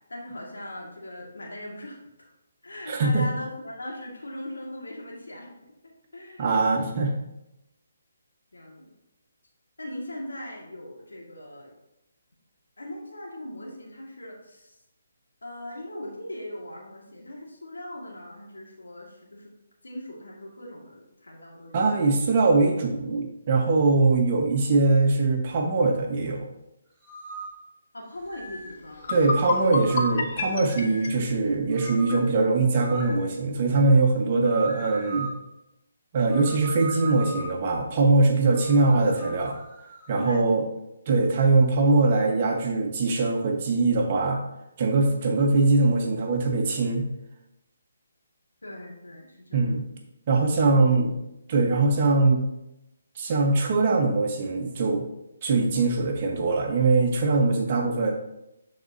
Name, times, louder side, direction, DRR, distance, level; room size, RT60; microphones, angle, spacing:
voice 1, 0.1-2.3 2.6-5.5 5.8-6.9 8.5-8.9 9.8-11.7 12.8-14.8 15.4-19.5 19.8-21.8 27.9-29.1 40.2-40.7 48.6-50.0, left 1 dB, 80° left, -2 dB, 1.8 m, -40 dB
voice 2, 2.9-3.3 6.4-7.1 21.7-26.5 29.1-35.3 36.1-39.6 40.1-40.6 41.1-44.4 44.8-47.0 49.5-49.8 50.3-51.1 51.5-52.4 53.2-55.0 55.4-58.1, right 3 dB, 40° right, 1 dB, 1.3 m, -22 dB
sound 1, 27.0-27.6 28.3-28.8 29.7-30.3 30.7-31.2 31.7-32.3 32.8-33.2 34.4-35.4 36.3-37.6 38.5-40.4, right 3 dB, 15° right, 2.5 m, -39 dB
sound 2, 28.5-28.6 28.9-32.0, left 4 dB, 50° left, 0.9 m, -30 dB
11.0 x 4.3 x 2.8 m, 0.88 s
figure-of-eight pair, 145°, 0 cm